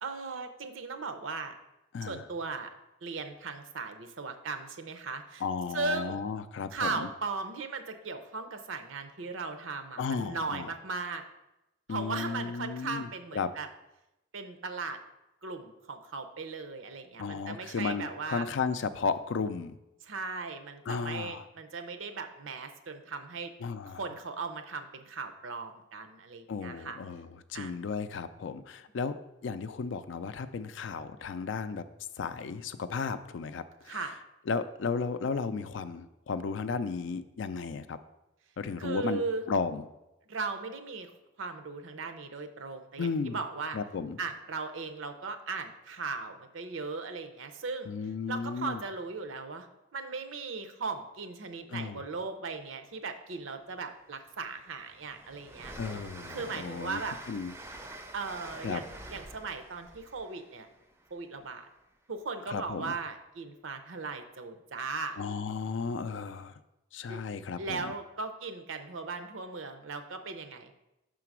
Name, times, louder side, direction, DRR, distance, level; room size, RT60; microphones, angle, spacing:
voice 1, 0.0-1.5 2.0-2.7 3.0-5.4 5.7-6.2 6.7-11.2 11.9-13.7 14.3-15.0 15.4-18.4 20.0-23.5 24.0-27.0 27.5-27.7 33.9-34.2 38.8-39.4 40.3-43.8 44.2-47.9 48.3-55.7 56.3-57.2 58.1-60.7 61.1-61.7 62.1-65.2 67.1-67.2 67.6-70.7, right 4 dB, 85° right, 7 dB, 0.7 m, -37 dB
voice 2, 5.4-7.1 10.0-10.7 11.9-13.1 13.3-13.5 17.2-19.8 20.9-21.5 23.6-24.0 26.5-31.8 32.2-34.0 34.5-38.0 38.6-39.2 39.5-39.9 43.0-43.4 43.7-44.2 47.9-48.8 51.7-52.0 55.8-57.0 57.3-57.5 58.6-58.8 62.5-62.9 65.2-66.5 66.9-67.9, left 5 dB, 70° left, 12 dB, 0.4 m, -34 dB
Train, 54.0-61.7, right 1 dB, 15° right, 0.4 m, -48 dB
5.8 x 3.8 x 6.0 m, 0.92 s
head